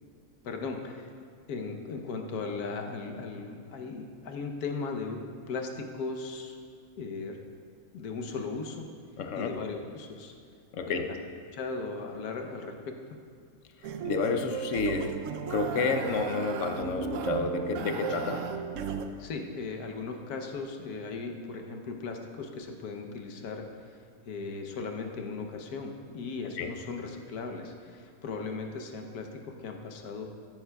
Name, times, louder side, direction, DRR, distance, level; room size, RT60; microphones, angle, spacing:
voice 1, 0.4-1.1 1.5-6.6 7.0-7.4 7.9-8.9 9.4-10.3 10.9-11.1 11.5-13.2 17.8-18.0 19.2-24.0 24.2-30.3, left 4 dB, 85° left, 3 dB, 1.4 m, -37 dB
voice 2, 9.2-9.5 10.7-11.1 13.8-15.2 15.5-18.5 26.6-26.7, left 4 dB, 60° left, 6 dB, 1.0 m, -30 dB
sound 1, 13.8-19.1, right 6 dB, 65° right, 0.9 m, -35 dB
14.0 x 10.5 x 2.3 m, 2.3 s
omnidirectional pair, 1.6 m